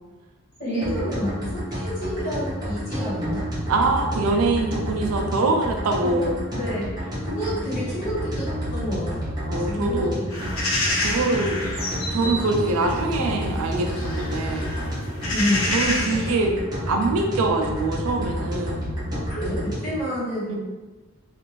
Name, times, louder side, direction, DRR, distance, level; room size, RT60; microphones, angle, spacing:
voice 1, 0.6-3.4 6.0-10.5 15.3-15.6 19.3-20.6, left 1 dB, 35° left, -9 dB, 1.2 m, -29 dB
sound 1, 0.8-20.0, equal, 20° right, 0.8 m, -30 dB
voice 2, 3.7-6.3 9.5-10.2 11.0-11.6 12.1-14.7 15.7-16.5 16.9-18.9 20.5-20.6, right 3 dB, 85° right, 3 dB, 0.4 m, -24 dB
sound 2, 10.3-16.3, left 1 dB, 90° left, 0.7 m, -29 dB
2.5 x 2.5 x 3.0 m, 1.2 s
head